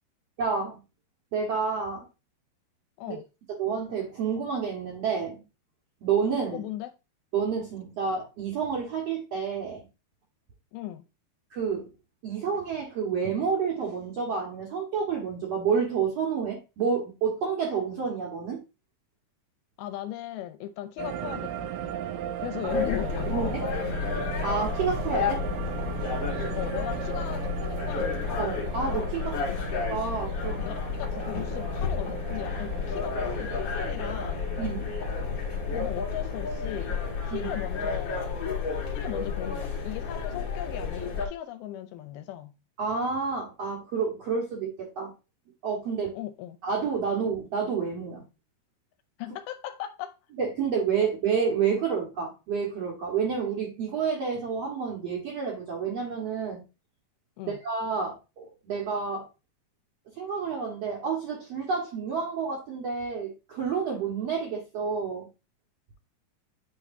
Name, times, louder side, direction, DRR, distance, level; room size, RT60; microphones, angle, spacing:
voice 1, 0.4-0.8 1.3-2.1 3.1-3.2 3.6-5.4 6.0-6.6 7.3-9.9 11.5-11.9 12.2-18.6 22.7-22.8 23.3-23.7 24.4-25.5 28.4-29.4 29.9-30.6 34.6-34.9 37.3-37.5 42.8-45.1 45.6-46.2 46.6-48.2 50.4-56.6 57.5-59.3 60.2-65.3, right 6 dB, 55° right, 1.9 m, -29 dB
voice 2, 6.5-6.9 10.7-11.0 19.8-22.0 22.4-23.6 26.6-28.2 29.5-29.6 30.7-34.4 35.7-37.0 37.2-38.3 38.9-42.5 46.1-46.6 49.2-50.2 57.4-57.6, left 13 dB, 80° left, 2.4 m, -37 dB
sound 1, 21.0-37.6, right 10 dB, 80° right, 2.0 m, -38 dB
sound 2, 22.7-41.3, left 5 dB, 60° left, 1.2 m, -31 dB
8.5 x 4.2 x 2.6 m
omnidirectional pair, 4.5 m